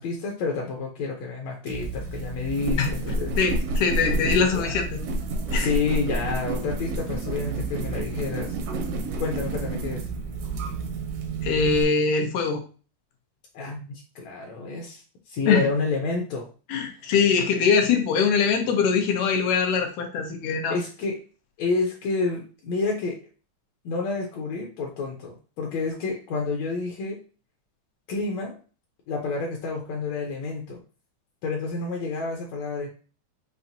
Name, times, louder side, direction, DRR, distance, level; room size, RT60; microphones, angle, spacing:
voice 1, 0.0-3.3 4.2-4.7 5.5-8.6 9.2-10.0 13.5-15.0 15.3-16.5 20.7-21.2 21.6-23.2 23.9-27.2 28.1-28.6 29.1-30.8 31.4-32.9, left 4 dB, 70° left, 0 dB, 1.9 m, -29 dB
sound 1, 1.7-11.8, right 2 dB, 80° right, 1.3 m, -29 dB
voice 2, 3.4-5.0 5.5-5.7 11.4-12.6 15.5-15.7 16.7-20.8, left 5 dB, 90° left, 3 dB, 2.4 m, -22 dB
7.1 x 2.6 x 2.7 m, 0.36 s
omnidirectional pair, 3.5 m